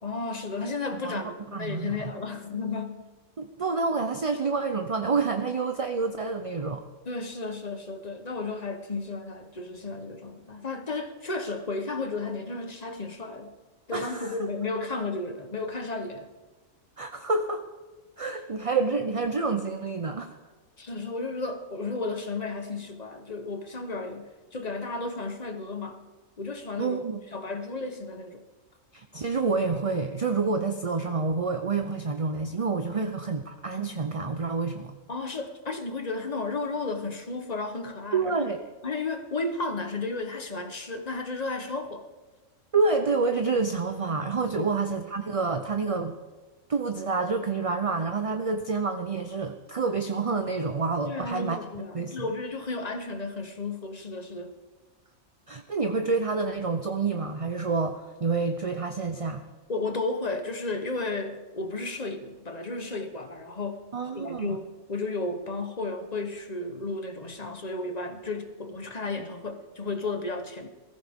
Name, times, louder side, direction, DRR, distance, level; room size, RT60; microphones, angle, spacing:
voice 1, 0.0-3.0 7.0-13.5 13.9-16.3 20.8-26.0 26.4-27.0 27.3-28.4 32.9-33.1 35.1-38.5 38.8-42.1 44.5-44.7 51.0-54.5 59.7-63.9 64.1-70.7, left 3 dB, 35° left, 7 dB, 1.1 m, -33 dB
voice 2, 1.5-2.1 3.4-6.8 13.9-14.4 17.0-17.6 18.2-20.4 26.8-27.2 28.9-35.0 38.1-38.6 42.7-46.1 46.7-51.6 51.9-52.2 55.5-59.5 63.9-64.6, right 4 dB, 35° right, 7 dB, 0.6 m, -28 dB
20.5 x 14.5 x 3.6 m, 1.3 s
omnidirectional pair, 1.4 m